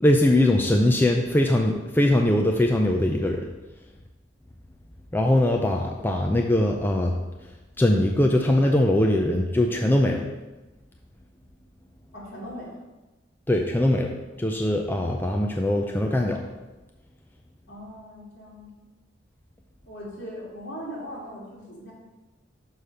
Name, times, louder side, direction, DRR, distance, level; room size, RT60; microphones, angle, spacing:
voice 1, 0.0-3.4 5.1-7.1 7.8-10.2 13.5-14.1 14.4-16.4, left 1 dB, 10° left, 2 dB, 0.5 m, -21 dB
voice 2, 12.1-12.8 17.7-18.7 19.9-21.9, equal, 65° left, -5 dB, 2.9 m, -39 dB
6.4 x 5.1 x 5.6 m, 1.1 s
head